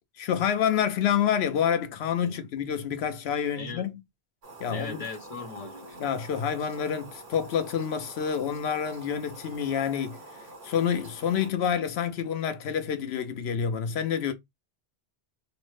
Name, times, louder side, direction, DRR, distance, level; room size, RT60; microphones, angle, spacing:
voice 1, 0.2-3.9 4.6-5.0 6.0-10.2 10.6-14.3, left 8 dB, 90° left, 0.9 m, -28 dB
voice 2, 2.2-2.5 3.5-3.9 4.7-6.1, left 4 dB, 40° left, 0.7 m, -39 dB
sound 1, 4.4-11.5, right 2 dB, 40° right, 1.1 m, -47 dB
3.1 x 2.0 x 3.1 m
omnidirectional pair, 1.0 m